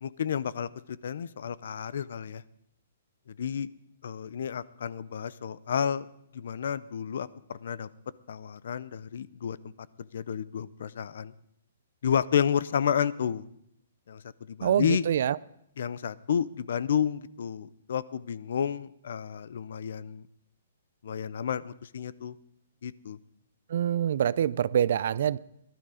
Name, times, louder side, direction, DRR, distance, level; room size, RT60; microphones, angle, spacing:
voice 1, 0.0-0.7 1.0-2.4 3.3-3.7 4.0-6.1 6.3-7.9 8.3-9.6 10.1-11.3 12.0-13.5 14.1-14.2 14.5-15.0 15.8-20.3 21.0-22.3 22.8-23.2, left 8 dB, 55° left, 0.6 m, -31 dB
voice 2, 14.6-15.4 23.7-25.4, right 9 dB, 50° right, 0.4 m, -25 dB
18.5 x 12.5 x 5.0 m
hypercardioid pair, 175°, 0 cm